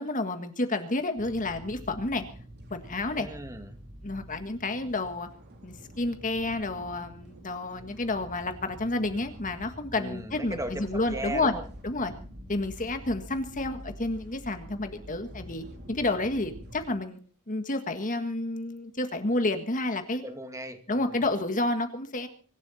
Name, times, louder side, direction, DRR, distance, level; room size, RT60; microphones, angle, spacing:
voice 1, 0.0-2.2 2.7-3.3 4.0-5.3 5.6-11.5 11.8-12.1 12.5-17.2 17.5-20.2 20.9-22.3, left 2 dB, 35° left, 7 dB, 1.7 m, -30 dB
sound 1, 1.2-16.9, equal, 50° right, 3.5 m, -46 dB
voice 2, 3.1-3.8 10.0-11.6 20.2-21.3, right 1 dB, 15° right, 7 dB, 2.1 m, -38 dB
24.5 x 12.0 x 4.3 m, 0.43 s
head